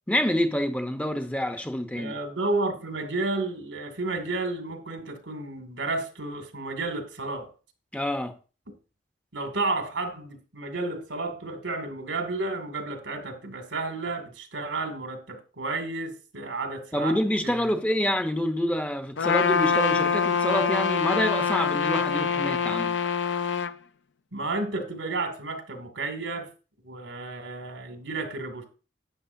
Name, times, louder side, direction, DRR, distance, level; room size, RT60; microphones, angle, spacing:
voice 1, 0.1-2.1 7.9-8.4 16.9-23.0, equal, 5° left, 0.8 m, -27 dB
voice 2, 2.0-7.5 9.3-17.2 17.4-17.7 24.3-26.5 26.8-28.7, right 3 dB, 85° right, 2.3 m, -32 dB
Trumpet, 19.2-23.7, left 5 dB, 75° left, 0.6 m, -25 dB
11.5 x 9.1 x 2.6 m
head